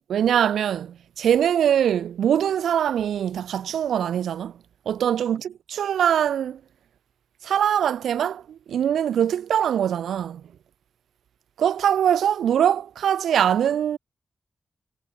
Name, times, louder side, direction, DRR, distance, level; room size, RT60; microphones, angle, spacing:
voice 1, 0.1-4.5 4.9-6.6 7.4-10.4 11.6-14.0, right 9 dB, 90° right, 2.5 m, -22 dB
supercardioid pair, 45°, 0 cm